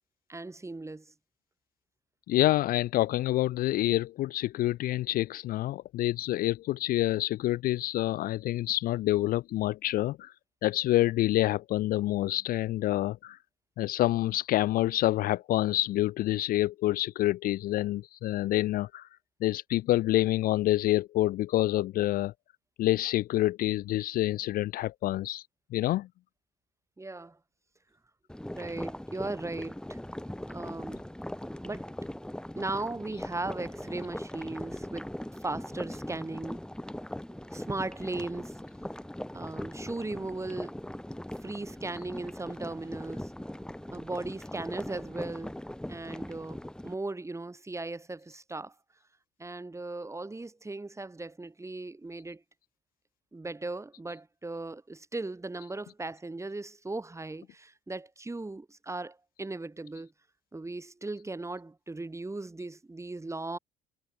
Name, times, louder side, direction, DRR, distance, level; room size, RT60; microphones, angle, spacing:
voice 1, 0.3-1.1 27.0-27.4 28.5-30.0 30.5-31.0 31.6-31.9 32.6-35.1 35.4-36.6 37.3-38.6 39.3-40.8 41.4-43.3 43.9-45.6 45.9-48.7 49.4-52.4 53.3-60.1 60.5-63.6, right 2 dB, 15° right, 4.2 m, -37 dB
voice 2, 2.3-10.3 10.6-13.4 13.8-19.1 19.4-22.3 22.8-26.1, left 15 dB, 45° left, 0.6 m, -27 dB
sound 1, 28.3-46.9, left 1 dB, 5° left, 2.7 m, -40 dB
figure-of-eight pair, 55°, 20 cm